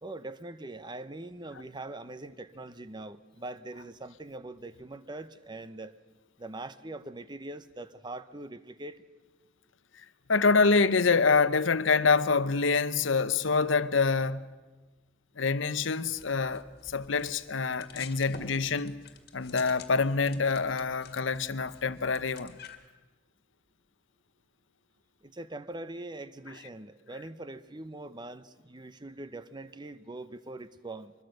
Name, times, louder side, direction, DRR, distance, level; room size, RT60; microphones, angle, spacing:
voice 1, 0.0-6.0 6.4-9.0 25.2-31.1, right 2 dB, 20° right, 0.8 m, -42 dB
voice 2, 10.3-14.4 15.4-19.0 19.3-22.5, left 4 dB, 75° left, 0.9 m, -26 dB
sound 1, 16.0-22.9, left 5 dB, 50° left, 2.0 m, -50 dB
24.5 x 21.5 x 6.5 m
head